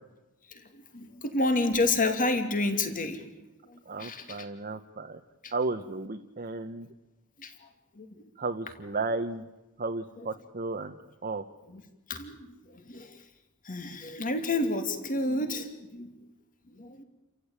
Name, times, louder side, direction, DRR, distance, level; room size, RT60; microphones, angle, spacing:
voice 1, 0.5-3.3 3.7-4.5 5.4-5.5 7.4-7.7 7.9-8.2 10.2-10.3 11.7-11.8 12.1-13.2 13.6-16.2 16.7-17.0, left 2 dB, 40° left, 7 dB, 2.7 m, -30 dB
voice 2, 3.9-5.2 5.5-6.9 8.4-9.4 9.8-10.9 11.2-11.4, right 3 dB, 40° right, 4 dB, 1.1 m, -33 dB
30.0 x 15.0 x 8.9 m, 1.0 s
head